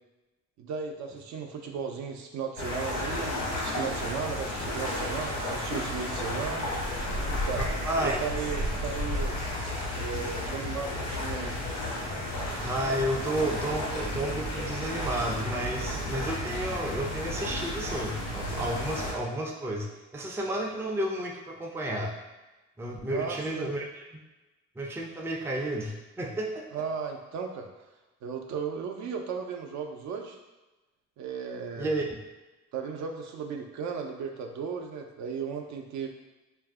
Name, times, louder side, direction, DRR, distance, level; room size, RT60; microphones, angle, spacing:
voice 1, 0.6-6.7 7.2-7.7 8.0-9.4 10.0-11.6 23.1-23.7 26.7-27.7 28.2-30.4 31.2-31.9 32.7-36.1, right 6 dB, 70° right, 3 dB, 0.5 m, -35 dB
sound 1, 2.6-19.1, left 1 dB, 85° left, 1.0 m, -32 dB
voice 2, 7.6-8.2 12.6-19.9 20.1-22.1 22.8-24.0 24.8-26.9 31.8-32.1, right 1 dB, 10° right, 0 dB, 0.3 m, -32 dB
2.5 x 2.0 x 3.5 m, 1.1 s
cardioid pair, 90°, 30 cm